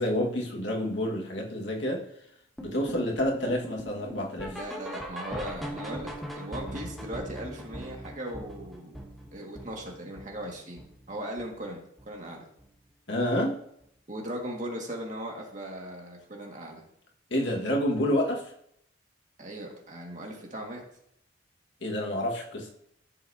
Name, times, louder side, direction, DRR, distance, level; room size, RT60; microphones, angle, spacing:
voice 1, 0.0-2.0 2.6-4.6 13.1-13.6 17.3-18.4 21.8-22.7, left 1 dB, 65° left, -1 dB, 1.8 m, -28 dB
sound 1, 2.6-11.7 12.0-12.3 12.6-12.7 13.2-13.3 13.8-13.9, equal, ahead, 1.3 m, -41 dB
voice 2, 4.4-9.0 9.3-11.8 12.1-12.4 14.1-16.8 19.4-20.8, right 1 dB, 40° right, -1 dB, 2.0 m, -38 dB
14.0 x 6.6 x 2.8 m, 0.71 s
head